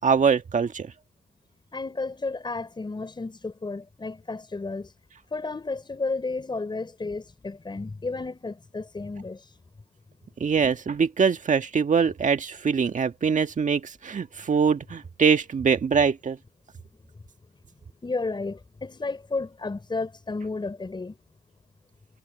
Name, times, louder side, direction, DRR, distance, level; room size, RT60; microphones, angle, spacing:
voice 1, 0.0-0.9 10.4-16.4, right 6 dB, 40° right, 1.8 m, -23 dB
voice 2, 1.7-4.9 5.3-9.4 18.0-21.2, left 3 dB, 25° left, 4.8 m, -32 dB
cardioid pair, 90°, 20 cm